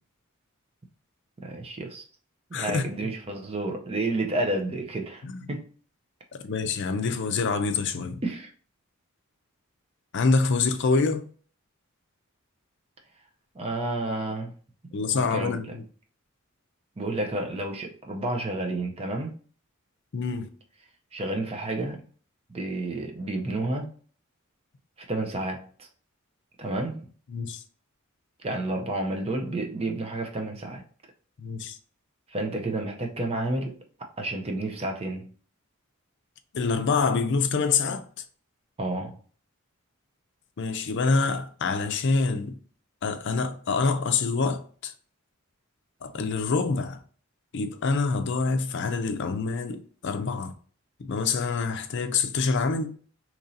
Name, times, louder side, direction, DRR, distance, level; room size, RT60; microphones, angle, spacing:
voice 1, 1.4-2.1 2.5-5.7 8.2-8.5 13.5-14.5 15.1-15.8 17.0-19.4 21.1-22.0 22.5-23.9 25.0-25.9 26.6-27.1 28.4-30.8 32.3-35.3 38.8-39.2, right 2 dB, 30° right, 0.5 m, -30 dB
voice 2, 2.5-2.8 5.2-5.4 6.4-8.2 10.1-11.3 14.9-15.8 20.1-20.5 27.3-27.6 31.4-31.8 36.5-38.1 40.6-42.6 43.0-44.9 46.0-47.0 47.5-50.5 51.0-53.0, left 4 dB, 55° left, 0.5 m, -26 dB
2.9 x 2.6 x 3.9 m
head